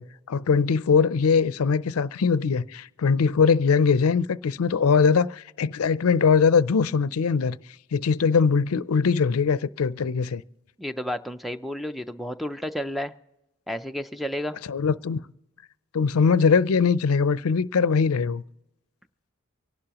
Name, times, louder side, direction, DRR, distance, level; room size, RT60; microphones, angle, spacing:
voice 1, 0.0-7.6 7.9-10.4 14.7-15.2 15.9-18.4, left 5 dB, 80° left, 0.5 m, -21 dB
voice 2, 10.8-13.1 13.7-14.6, equal, ahead, 0.4 m, -31 dB
24.5 x 11.5 x 2.9 m
head